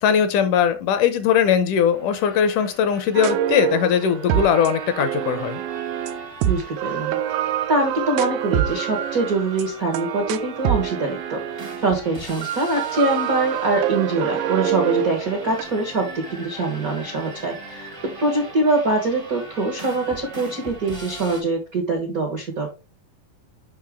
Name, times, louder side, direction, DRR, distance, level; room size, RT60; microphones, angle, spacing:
voice 1, 0.0-5.6, left 8 dB, 75° left, 11 dB, 2.1 m, -20 dB
sound 1, 1.9-21.4, right 2 dB, 55° right, 0.3 m, -40 dB
sound 2, 3.1-11.9 12.4-15.6, right 11 dB, 90° right, 2.4 m, -26 dB
voice 2, 6.4-7.2 7.7-22.7, right 2 dB, 75° right, 2 dB, 0.8 m, -24 dB
6.6 x 5.9 x 3.5 m, 0.29 s
omnidirectional pair, 4.0 m